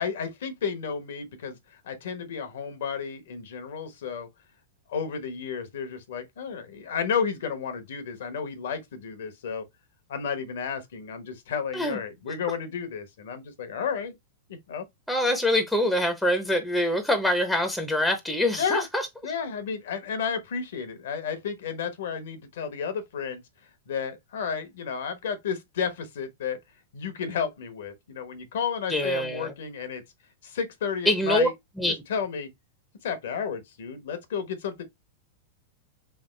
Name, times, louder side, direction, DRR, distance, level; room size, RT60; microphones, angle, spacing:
voice 1, 0.0-4.3 4.9-9.6 10.1-14.1 14.5-14.9 18.6-18.9 19.2-23.4 23.9-26.6 26.9-30.0 30.4-31.5 31.8-32.5 33.0-34.8, left 6 dB, 70° left, 1.1 m, -32 dB
voice 2, 15.1-18.8 28.9-29.5 31.1-31.5 31.8-31.9, left 1 dB, ahead, 0.9 m, -24 dB
3.5 x 3.5 x 3.2 m
hypercardioid pair, 105°, 0 cm